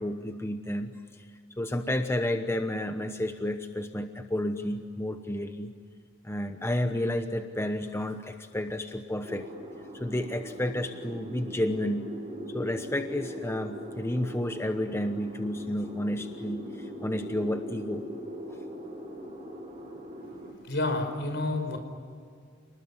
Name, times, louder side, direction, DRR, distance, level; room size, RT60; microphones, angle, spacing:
voice 1, 0.0-5.7 6.2-9.5 9.9-12.1 12.5-18.0, left 1 dB, 15° left, 7 dB, 1.0 m, -31 dB
sound 1, 9.2-20.5, equal, 25° right, 7.3 m, -41 dB
voice 2, 20.6-21.8, left 2 dB, 65° left, 6 dB, 4.9 m, -29 dB
29.5 x 20.0 x 9.8 m, 2.2 s
head